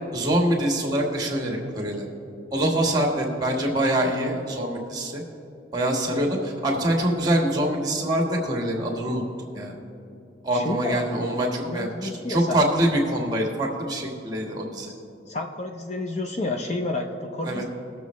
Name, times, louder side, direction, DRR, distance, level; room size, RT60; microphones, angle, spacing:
voice 1, 0.1-2.0 2.5-5.2 5.7-9.2 9.5-9.7 10.4-14.9 17.4-17.6, right 1 dB, 20° right, 0 dB, 1.5 m, -24 dB
voice 2, 10.5-11.0 11.3-12.6 15.3-17.6, left 2 dB, 35° left, 3 dB, 0.6 m, -30 dB
20.0 x 7.0 x 3.1 m, 2.6 s
head